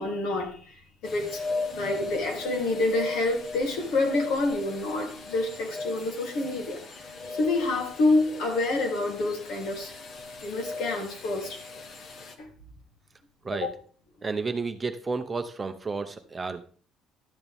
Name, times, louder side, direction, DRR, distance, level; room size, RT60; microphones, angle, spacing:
voice 1, 0.0-1.4 1.8-6.8 7.2-9.9 10.4-11.6 12.4-12.5 13.5-13.8, left 2 dB, 70° left, 1 dB, 3.1 m, -27 dB
sound 1, 1.0-12.4, left 3 dB, 40° left, 1.2 m, -38 dB
voice 2, 14.2-16.6, right 4 dB, 20° right, 8 dB, 0.7 m, -31 dB
11.5 x 8.7 x 3.5 m, 0.41 s
cardioid pair, 170°, 0 cm